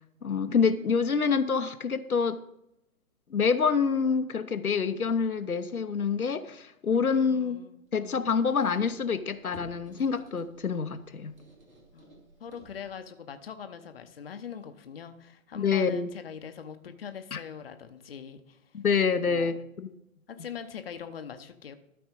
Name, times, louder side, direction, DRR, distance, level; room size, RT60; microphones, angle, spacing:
voice 1, 0.2-2.4 3.3-7.6 7.9-11.3 15.5-16.1 17.3-17.4 18.7-19.9, left 5 dB, 85° left, 10 dB, 0.7 m, -27 dB
voice 2, 7.3-7.8 11.9-18.6 19.2-19.5 20.3-21.7, left 7 dB, 45° left, 8 dB, 0.7 m, -42 dB
Squeak, 7.9-13.1, right 1 dB, 70° right, 2.7 m, -54 dB
13.0 x 4.3 x 5.2 m, 0.83 s
figure-of-eight pair, 135°, 42 cm